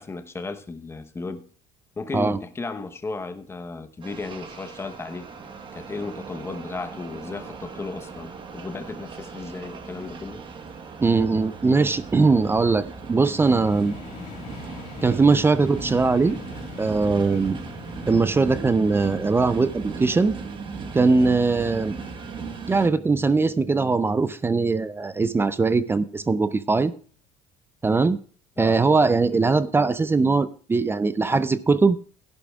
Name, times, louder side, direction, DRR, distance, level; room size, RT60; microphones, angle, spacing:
voice 1, 0.0-1.4 2.0-5.3 5.7-10.4 11.8-11.9 28.6-28.8, left 3 dB, 20° left, 1.0 m, -34 dB
sound 1, 4.0-22.9, right 5 dB, 35° right, 1.4 m, -38 dB
voice 2, 11.0-14.0 15.0-16.4 16.8-17.6 18.1-20.4 20.9-22.0 22.7-26.9 27.8-28.2 28.6-32.0, right 4 dB, 15° right, 0.5 m, -21 dB
sound 2, 13.4-25.1, left 4 dB, 60° left, 1.9 m, -43 dB
15.5 x 11.5 x 2.4 m
cardioid pair, 110°, 14 cm